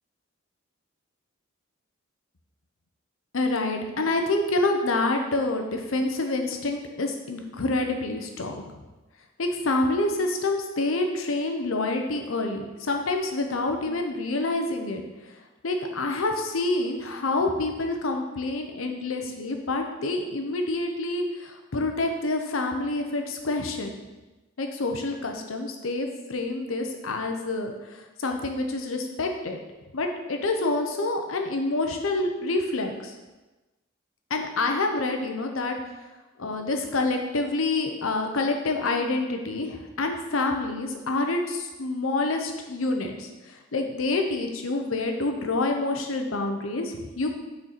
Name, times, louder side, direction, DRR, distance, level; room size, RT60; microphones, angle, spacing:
voice 1, 3.3-8.6 9.4-15.0 15.6-23.9 24.6-29.6 29.9-33.1 34.3-35.7 36.4-47.3, left 2 dB, 85° left, 4 dB, 0.8 m, -27 dB
6.2 x 4.5 x 4.2 m, 1.1 s
head